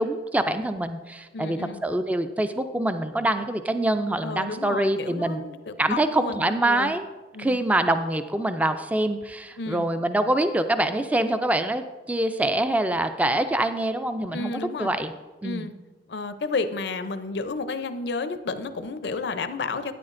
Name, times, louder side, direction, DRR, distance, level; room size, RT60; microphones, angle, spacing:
voice 1, 0.0-5.4 5.8-7.0 7.4-15.1 15.4-15.7, right 1 dB, 10° right, 9 dB, 0.3 m, -25 dB
voice 2, 1.3-1.8 4.2-7.0 7.3-7.6 9.6-9.9 14.3-14.9 15.4-15.7 16.1-19.9, left 3 dB, 70° left, 10 dB, 0.5 m, -31 dB
13.0 x 9.4 x 2.5 m, 1.3 s
head